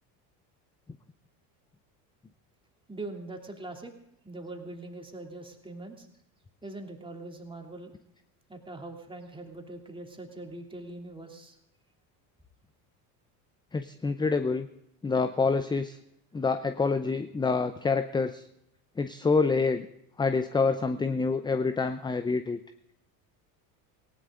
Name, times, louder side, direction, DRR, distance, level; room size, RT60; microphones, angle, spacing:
voice 1, 2.9-3.9 4.2-6.1 6.6-7.9 8.5-11.6, right 2 dB, 10° right, 2 dB, 2.9 m, -42 dB
voice 2, 13.7-14.7 15.0-16.0 16.3-18.5 19.0-19.9 20.2-22.6, left 4 dB, 10° left, 10 dB, 0.5 m, -27 dB
18.5 x 17.0 x 3.8 m, 0.78 s
hypercardioid pair, 90°, 49 cm